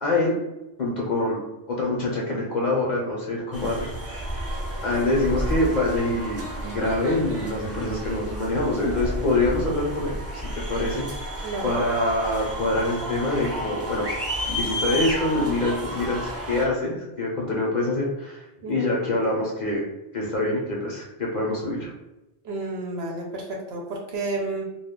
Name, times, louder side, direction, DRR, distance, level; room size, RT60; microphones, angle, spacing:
voice 1, 0.0-0.4 0.8-1.4 1.7-4.4 4.8-11.1 11.6-14.1 14.5-19.8 20.1-21.9, left 2 dB, 45° left, -4 dB, 0.7 m, -25 dB
sound 1, 3.5-16.7, equal, 20° right, 0.4 m, -31 dB
voice 2, 11.4-11.8 18.6-18.9 22.4-24.6, right 2 dB, 65° right, -1 dB, 0.8 m, -31 dB
2.3 x 2.2 x 3.5 m, 0.99 s
omnidirectional pair, 1.2 m